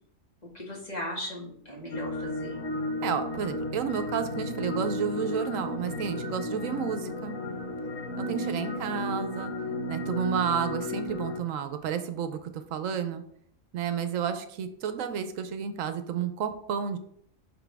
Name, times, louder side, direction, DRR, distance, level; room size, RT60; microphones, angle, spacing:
voice 1, 0.5-2.6 8.2-8.8, left 1 dB, 30° left, -3 dB, 1.9 m, -38 dB
sound 1, 1.9-11.4, left 1 dB, 75° left, 1.4 m, -33 dB
voice 2, 3.0-7.4 8.2-9.5 9.9-13.2 13.7-17.0, right 7 dB, 80° right, 9 dB, 1.0 m, -31 dB
6.0 x 5.4 x 3.4 m, 0.66 s
omnidirectional pair, 1.4 m